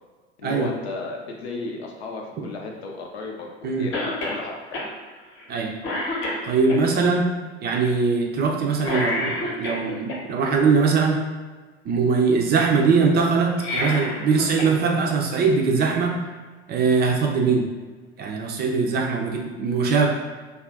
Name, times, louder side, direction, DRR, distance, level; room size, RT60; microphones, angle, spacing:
voice 1, 0.4-4.9, left 3 dB, 75° left, 1 dB, 0.6 m, -34 dB
Cough, 3.9-4.4 4.7-4.9 5.4-5.5 5.8-6.8 8.8-10.2 13.4-14.7 15.1-15.2 16.3-16.4, left 1 dB, 40° left, 0.8 m, -28 dB
voice 2, 6.5-7.3 7.6-11.2 11.8-16.1 16.7-17.7 18.2-20.1, right 4 dB, 30° right, 1 dB, 0.5 m, -21 dB
2.4 x 2.4 x 3.4 m, 1.4 s
figure-of-eight pair, 70°, 32 cm